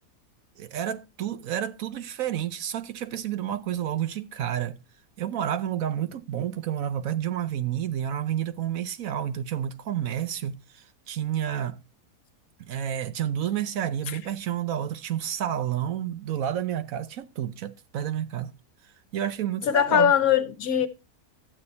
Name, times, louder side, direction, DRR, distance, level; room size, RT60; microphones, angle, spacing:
voice 1, 0.6-4.8 5.2-11.8 12.6-18.5 19.1-20.1, right 10 dB, 70° right, 1.1 m, -30 dB
voice 2, 19.6-20.9, left 9 dB, 70° left, 1.4 m, -21 dB
12.5 x 8.7 x 4.0 m
omnidirectional pair, 1.6 m